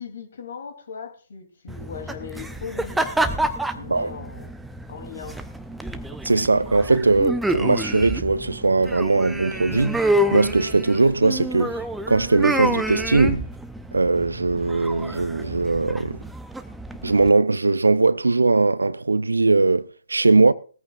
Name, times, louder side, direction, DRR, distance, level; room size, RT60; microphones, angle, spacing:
voice 1, 0.0-3.5 3.7-4.5 4.9-5.4, left 6 dB, 55° left, 3.2 m, -38 dB
sound 1, 1.7-17.3, right 1 dB, 5° right, 0.7 m, -28 dB
voice 2, 6.2-10.0 10.3-11.8 12.1-13.5 13.9-16.2 17.0-20.5, right 3 dB, 75° right, 0.6 m, -20 dB
18.5 x 14.0 x 2.5 m
figure-of-eight pair, 130°, 0 cm